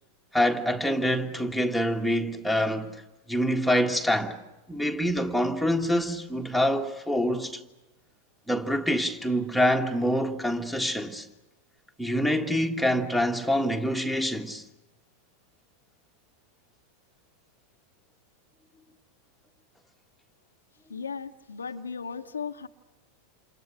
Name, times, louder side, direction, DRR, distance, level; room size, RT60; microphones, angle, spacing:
voice 1, 0.3-3.0 3.3-4.4 4.7-7.6 8.5-11.3 12.0-14.6, equal, ahead, 1.6 m, -26 dB
voice 2, 20.9-22.7, left 6 dB, 75° left, 1.0 m, -36 dB
29.0 x 28.0 x 6.3 m
figure-of-eight pair, 90°, 0 cm